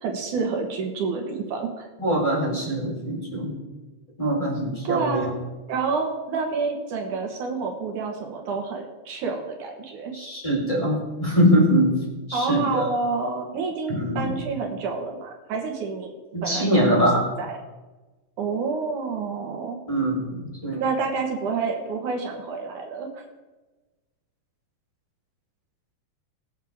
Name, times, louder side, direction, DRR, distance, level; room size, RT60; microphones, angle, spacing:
voice 1, 0.0-1.9 4.8-5.3 5.7-10.1 12.3-16.1 16.4-17.6 18.4-19.8 20.8-23.2, right 4 dB, 70° right, 2 dB, 2.9 m, -28 dB
voice 2, 2.0-3.6 4.2-5.3 10.1-12.0 12.3-12.9 13.9-14.4 16.3-17.3 19.9-20.8, equal, 10° left, -5 dB, 3.8 m, -23 dB
23.5 x 7.9 x 3.6 m, 1.2 s
omnidirectional pair, 3.7 m